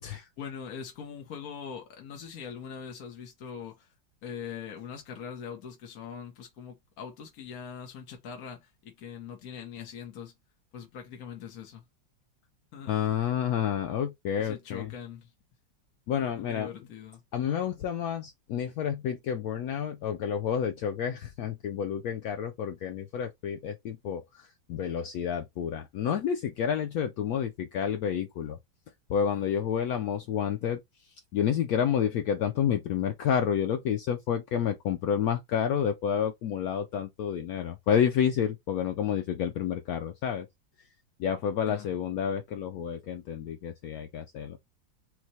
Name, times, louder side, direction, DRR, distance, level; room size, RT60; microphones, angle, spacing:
voice 1, 0.4-3.9 4.2-10.3 10.7-11.8 12.7-12.9 14.4-15.3 16.4-17.2 41.6-41.9, left 7 dB, 55° left, 1.1 m, -42 dB
voice 2, 12.9-14.9 16.1-16.7 17.3-24.2 24.7-28.6 29.1-30.8 31.3-40.5 41.2-44.6, left 8 dB, 80° left, 0.8 m, -29 dB
4.6 x 2.1 x 4.0 m
omnidirectional pair, 2.1 m